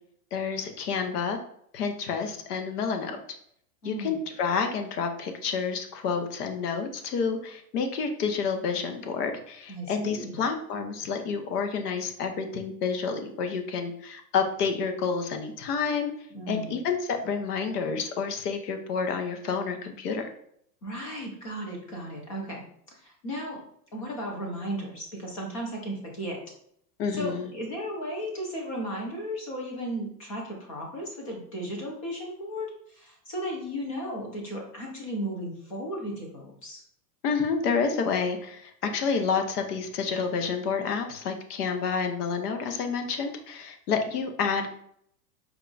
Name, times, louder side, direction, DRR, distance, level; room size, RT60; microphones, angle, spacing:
voice 1, 0.3-1.4 1.7-3.2 3.8-16.1 16.5-20.3 27.0-27.5 37.2-44.7, left 5 dB, 70° left, 5 dB, 0.9 m, -29 dB
voice 2, 3.8-4.2 9.7-10.4 16.3-16.8 20.8-23.6 23.9-26.4 27.1-36.8, equal, 25° left, -1 dB, 0.4 m, -35 dB
4.6 x 2.3 x 3.8 m, 0.68 s
supercardioid pair, 175°, 48 cm